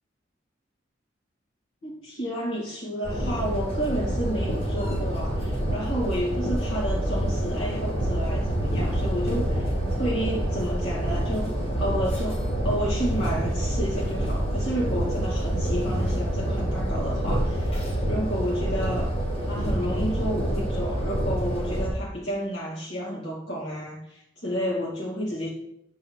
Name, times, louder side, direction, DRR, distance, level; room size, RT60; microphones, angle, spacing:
voice 1, 1.8-19.1 19.4-25.5, equal, 80° left, -7 dB, 2.8 m, -31 dB
sound 1, 3.0-21.9, equal, 35° left, 2.1 m, -27 dB
8.5 x 4.6 x 6.2 m, 0.80 s
head